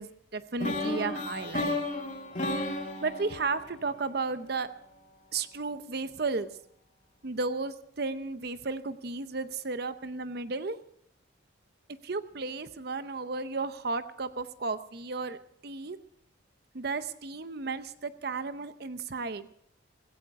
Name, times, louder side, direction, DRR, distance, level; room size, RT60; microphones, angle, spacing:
voice 1, 0.0-1.8 2.6-4.7 5.3-6.5 7.2-10.8 12.0-16.0 16.7-19.5, right 3 dB, 50° right, 12 dB, 0.7 m, -34 dB
sound 1, 0.6-4.6, left 2 dB, 35° left, 2.1 m, -33 dB
16.5 x 16.0 x 4.8 m, 0.66 s
head